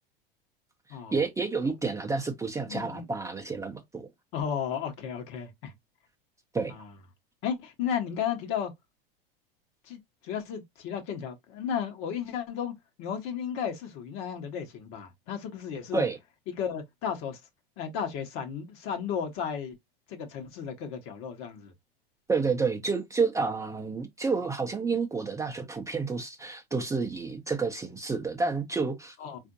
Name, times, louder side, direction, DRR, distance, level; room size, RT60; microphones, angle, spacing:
voice 1, 0.9-4.1 6.5-6.7 15.9-16.2 22.3-29.2, right 4 dB, 10° right, 0.6 m, -30 dB
voice 2, 2.7-3.1 4.3-5.7 6.7-6.9 7.4-8.7 9.8-16.0 16.6-17.4 17.8-19.8 20.1-21.7 29.2-29.4, left 8 dB, 45° left, 1.1 m, -34 dB
4.3 x 2.6 x 2.6 m
hypercardioid pair, 90°, 29 cm